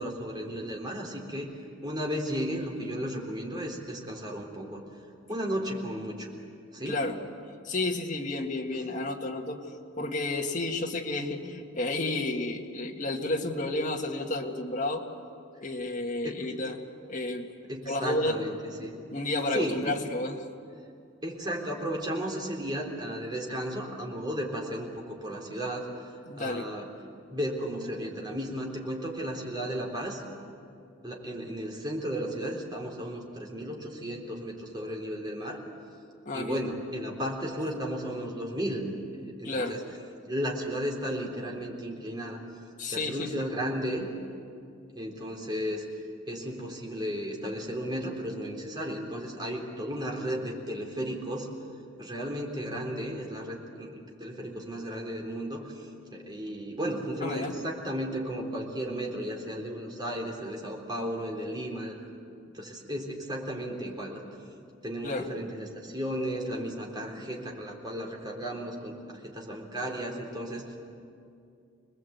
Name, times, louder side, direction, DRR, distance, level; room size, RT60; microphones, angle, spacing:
voice 1, 0.0-1.5 1.8-4.8 5.3-6.3 6.7-7.0 16.2-16.4 17.7-18.9 19.5-20.0 21.2-25.9 26.4-26.9 27.3-30.2 31.0-35.6 36.3-38.9 39.2-39.8 40.2-42.4 42.9-44.1 45.0-45.8 46.3-51.5 52.0-62.0 62.5-64.2 64.8-70.8, equal, 20° right, -1 dB, 3.6 m, -34 dB
voice 2, 6.9-7.2 7.6-9.6 10.0-15.0 15.6-16.8 17.1-17.5 17.9-18.4 18.8-20.4 26.3-26.7 36.3-36.7 37.6-37.7 39.4-39.8 42.8-43.4 57.2-57.6 65.0-65.3, left 2 dB, 40° left, 1 dB, 1.9 m, -31 dB
27.0 x 20.0 x 8.2 m, 2.4 s
head